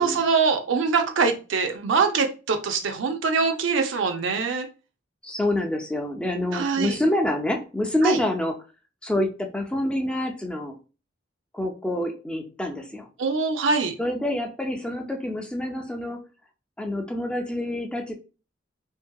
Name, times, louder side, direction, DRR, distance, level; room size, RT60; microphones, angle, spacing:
voice 1, 0.0-4.7 6.5-7.0 8.0-8.2 13.2-13.9, right 5 dB, 85° right, 5 dB, 0.5 m, -23 dB
voice 2, 5.2-8.6 9.0-10.8 11.5-13.1 14.0-16.3 16.8-18.1, left 1 dB, 5° left, 3 dB, 0.4 m, -27 dB
2.7 x 2.6 x 2.2 m, 0.33 s
head